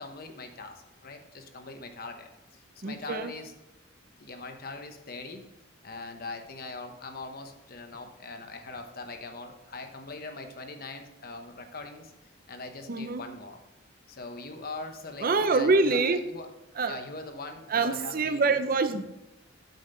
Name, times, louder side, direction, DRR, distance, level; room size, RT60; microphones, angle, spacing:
voice 1, 0.0-3.5 4.2-5.5 5.8-12.1 12.5-13.6 14.1-16.5 16.9-18.6, left 3 dB, 50° left, 6 dB, 1.0 m, -41 dB
voice 2, 2.8-3.3 12.9-13.2 15.2-16.2 16.8-17.0 17.7-19.0, right 3 dB, 45° right, 10 dB, 0.7 m, -25 dB
9.3 x 7.3 x 3.9 m, 0.95 s
head